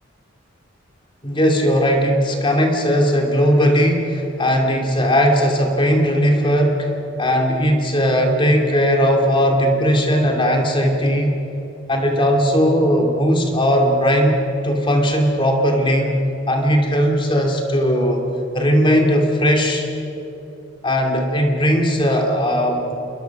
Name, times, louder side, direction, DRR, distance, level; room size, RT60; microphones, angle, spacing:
voice 1, 1.2-6.9 7.2-11.4 11.9-16.1 16.5-18.2 18.5-19.9 20.8-22.9, equal, 25° left, 2 dB, 2.4 m, -18 dB
27.5 x 22.5 x 5.9 m, 3.0 s
head